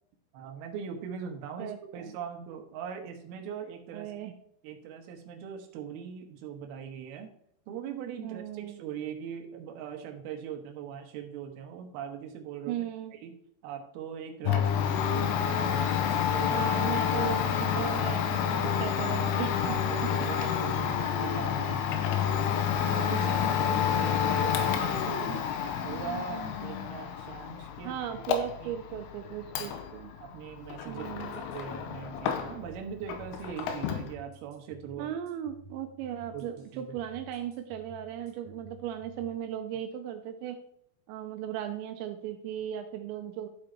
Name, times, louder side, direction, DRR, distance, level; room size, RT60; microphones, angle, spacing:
voice 1, 0.3-4.1 4.6-7.3 7.7-12.8 13.1-13.4 13.6-16.6 17.7-19.0 19.5-25.4 25.8-28.0 28.6-28.7 29.6-29.8 30.2-35.1 36.3-36.4 36.7-36.9, right 8 dB, 70° right, 3 dB, 2.4 m, -41 dB
voice 2, 1.6-2.1 3.9-4.3 8.2-8.8 12.7-13.1 15.1-15.2 16.5-19.5 20.4-20.6 21.0-21.5 23.2-24.4 27.8-30.1 30.9-31.4 35.0-40.6 41.1-43.5, right 10 dB, 90° right, 6 dB, 2.6 m, -37 dB
Domestic sounds home sounds, 14.4-32.8 33.1-34.1, left 8 dB, 80° left, 3.2 m, -29 dB
sound 1, 30.9-39.4, right 1 dB, 55° right, 2.2 m, -53 dB
11.5 x 5.2 x 4.4 m, 0.70 s
omnidirectional pair, 5.8 m